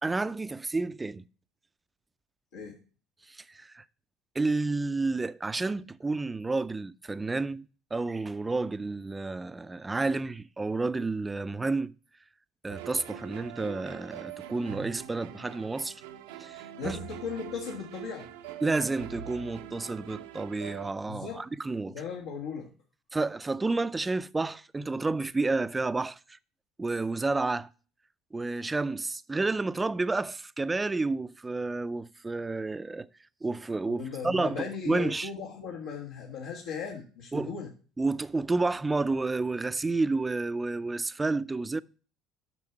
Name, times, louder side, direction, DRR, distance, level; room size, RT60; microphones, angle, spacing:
voice 1, 0.0-1.3 3.3-3.8 4.4-7.7 7.9-11.9 12.6-16.0 16.4-17.0 18.6-22.0 23.1-26.4 26.8-27.7 28.3-33.1 33.4-35.3 37.3-37.5 38.0-41.8, right 3 dB, 15° right, 0.4 m, -30 dB
sound 1, 12.7-20.9, right 10 dB, 85° right, 0.7 m, -43 dB
voice 2, 16.8-18.3 21.1-21.4 21.8-22.7 33.9-37.7, left 6 dB, 80° left, 1.5 m, -37 dB
7.1 x 6.1 x 4.5 m
hypercardioid pair, 80°, 0 cm